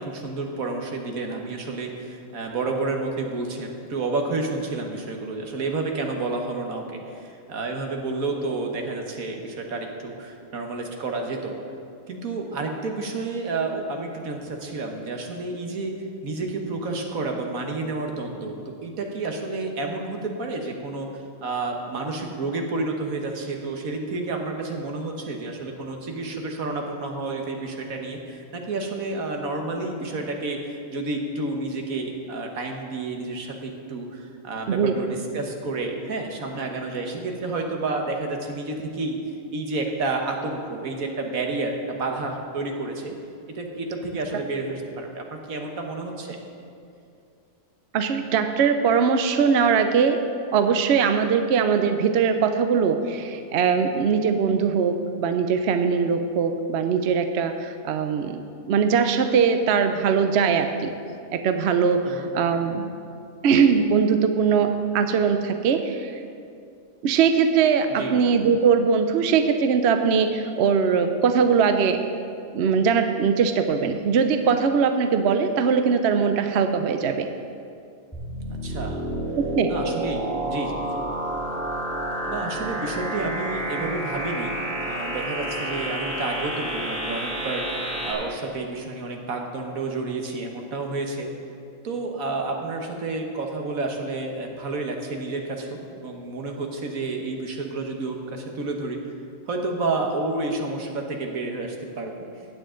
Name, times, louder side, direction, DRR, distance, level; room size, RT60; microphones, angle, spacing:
voice 1, 0.0-11.6 12.1-16.0 16.2-39.2 39.5-43.1 43.5-46.4 62.1-62.3 67.9-68.1 78.6-79.1 79.6-80.9 82.3-84.6 84.8-91.3 91.8-99.0 99.5-102.1, right 3 dB, 80° right, 2 dB, 1.7 m, -30 dB
voice 2, 47.9-50.2 50.5-58.4 58.7-60.9 61.3-62.9 63.4-66.2 67.0-72.0 72.5-77.3 79.6-79.7, right 6 dB, 60° right, 7 dB, 0.8 m, -21 dB
sound 1, 78.1-88.1, right 1 dB, 5° left, 2.5 m, -30 dB
16.0 x 9.5 x 3.8 m, 2.4 s
omnidirectional pair, 1.4 m